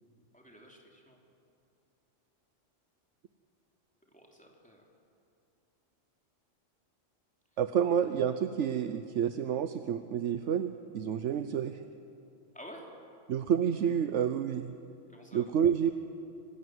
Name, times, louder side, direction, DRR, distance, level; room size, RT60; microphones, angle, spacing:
voice 1, 0.3-1.2 4.1-4.9 12.5-12.9 15.1-15.5, equal, 5° left, -1 dB, 3.4 m, -51 dB
voice 2, 7.6-11.8 13.3-14.7 15.3-15.9, right 8 dB, 70° right, 10 dB, 1.0 m, -29 dB
26.0 x 19.0 x 7.9 m, 2.6 s
omnidirectional pair, 1.3 m